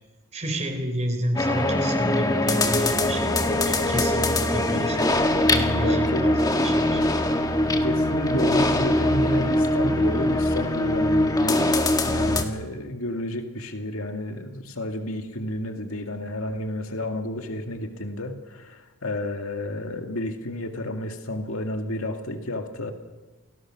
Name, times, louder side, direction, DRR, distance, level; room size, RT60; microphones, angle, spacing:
voice 1, 0.3-5.1 5.5-7.0, right 1 dB, 30° right, 5 dB, 3.8 m, -30 dB
sound 1, 1.4-12.4, left 1 dB, 15° left, 1.5 m, -22 dB
voice 2, 5.8-6.3 7.8-11.7 12.0-22.9, left 1 dB, 70° left, 5 dB, 2.2 m, -31 dB
29.0 x 20.0 x 6.2 m, 1.2 s
head